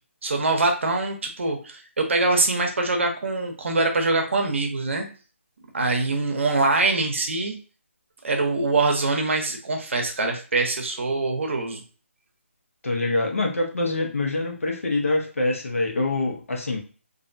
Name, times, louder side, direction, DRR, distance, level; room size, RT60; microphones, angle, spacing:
voice 1, 0.2-5.0 5.7-7.5 8.2-11.8, right 3 dB, 60° right, 3 dB, 0.7 m, -24 dB
voice 2, 12.8-16.8, left 2 dB, 80° left, 1 dB, 0.9 m, -25 dB
2.6 x 2.1 x 2.5 m, 0.36 s
hypercardioid pair, 165°, 7 cm